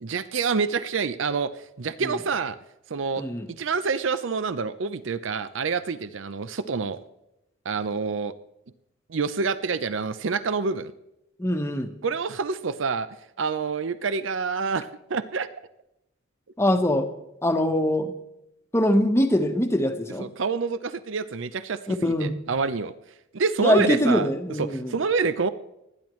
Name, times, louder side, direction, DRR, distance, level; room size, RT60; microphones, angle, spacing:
voice 1, 0.0-1.5 1.8-2.6 2.9-3.2 3.6-7.0 7.7-8.3 9.1-10.9 12.0-13.1 13.4-15.5 20.2-22.9 23.3-24.3 24.6-25.5, right 5 dB, 65° right, 14 dB, 0.6 m, -27 dB
voice 2, 3.2-3.5 11.4-11.9 16.6-17.1 17.4-18.1 18.7-20.3 21.9-22.3 23.6-24.9, left 1 dB, 15° left, 5 dB, 1.1 m, -23 dB
29.5 x 10.5 x 3.1 m, 0.88 s
head